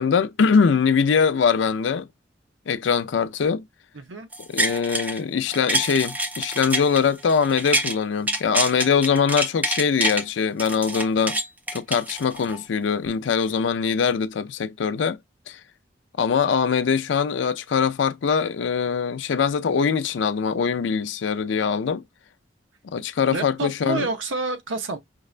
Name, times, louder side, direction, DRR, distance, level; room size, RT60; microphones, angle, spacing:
voice 1, 0.0-2.1 2.7-3.6 4.5-11.4 11.7-15.2 15.5-15.6 16.2-22.0 22.8-24.1, left 6 dB, 80° left, 0.4 m, -22 dB
voice 2, 3.9-4.3 23.3-25.0, right 3 dB, 90° right, 0.7 m, -28 dB
sound 1, 4.3-5.2 5.5-8.0 8.3-10.2 10.6-12.6 13.1-13.2, right 1 dB, 10° right, 0.4 m, -26 dB
5.3 x 2.1 x 2.4 m
head